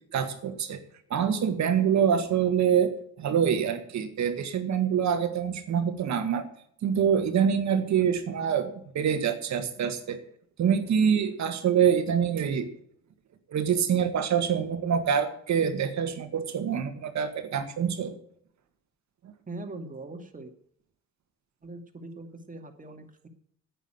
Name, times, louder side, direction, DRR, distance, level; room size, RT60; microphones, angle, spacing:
voice 1, 0.1-0.8 1.1-6.4 6.8-10.2 10.6-12.7 13.5-18.1 19.2-19.3, right 7 dB, 65° right, 8 dB, 1.9 m, -25 dB
voice 2, 19.5-20.5 21.6-23.3, right 2 dB, 25° right, 5 dB, 2.4 m, -41 dB
9.6 x 9.1 x 9.0 m, 0.66 s
cardioid pair, 90°, 30 cm